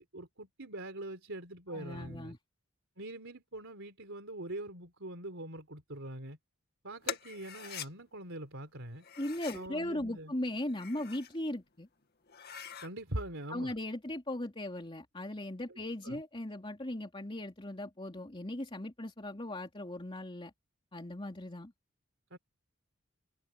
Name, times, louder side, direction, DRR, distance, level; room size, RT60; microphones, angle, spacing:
voice 1, 0.0-2.3 3.0-6.4 6.8-9.0 9.5-10.3 12.8-13.7 15.7-15.8 16.0-16.2 22.3-22.4, right 1 dB, 65° right, 4.2 m, -43 dB
voice 2, 1.7-2.4 9.2-11.9 13.5-20.5 20.9-21.7, left 1 dB, 25° left, 3.1 m, -38 dB
sound 1, 7.0-7.9 9.0-9.7 10.6-11.3 11.8-11.9 12.3-12.9, left 7 dB, 50° left, 2.1 m, -43 dB
head